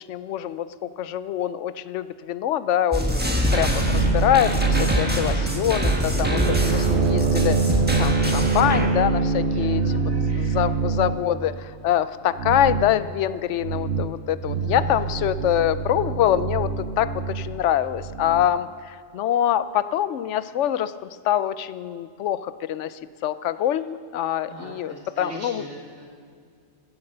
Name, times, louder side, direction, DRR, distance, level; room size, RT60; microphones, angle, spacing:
voice 1, 0.0-7.6 8.0-9.8 10.3-11.5 11.8-18.7 19.1-20.9 21.3-22.9 23.2-25.6, left 11 dB, 85° left, 15 dB, 0.9 m, -24 dB
sound 1, 2.9-8.9, equal, 10° right, 1.4 m, -24 dB
sound 2, 3.6-11.3 12.3-12.9 13.6-14.2 14.4-18.5, right 4 dB, 65° right, 0.9 m, -25 dB
voice 2, 5.0-5.7 9.3-11.0 14.4-15.1 24.4-26.0, right 2 dB, 80° right, -4 dB, 3.5 m, -40 dB
16.0 x 9.7 x 6.6 m, 2.2 s
omnidirectional pair, 1.2 m